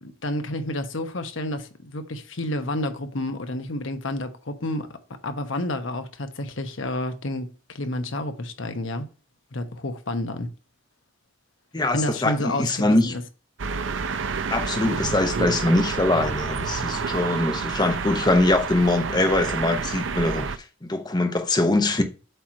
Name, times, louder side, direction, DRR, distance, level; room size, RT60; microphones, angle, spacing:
voice 1, 0.0-4.9 5.2-9.1 9.5-10.5 11.9-13.2, left 1 dB, 70° left, 1.1 m, -30 dB
voice 2, 11.7-13.1 14.5-20.6 20.8-22.0, left 2 dB, 20° left, 1.0 m, -22 dB
sound 1, 13.6-20.6, right 5 dB, 70° right, 0.6 m, -29 dB
8.0 x 3.1 x 5.1 m
head